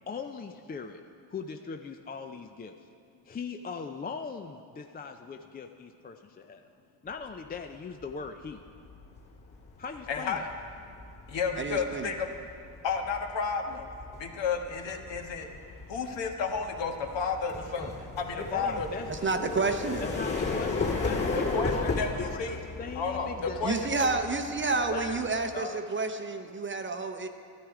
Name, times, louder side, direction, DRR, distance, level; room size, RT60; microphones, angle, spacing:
voice 1, 0.1-1.0 1.3-2.8 3.2-6.7 7.0-8.6 9.8-10.5 18.3-24.2 24.7-25.8, left 5 dB, 20° left, 5 dB, 0.4 m, -39 dB
sound 1, 8.2-8.5 8.9-25.6, left 3 dB, 40° left, 3.0 m, -36 dB
voice 2, 10.1-10.4 11.3-12.5 12.8-13.9 14.2-15.5 15.9-18.9 21.3-22.6 22.9-24.4, left 5 dB, 60° left, 3 dB, 1.5 m, -32 dB
voice 3, 11.6-12.1 19.1-20.0 23.6-27.3, right 3 dB, 25° right, 7 dB, 0.8 m, -30 dB
13.0 x 11.5 x 4.9 m, 2.4 s
supercardioid pair, 80°, 48 cm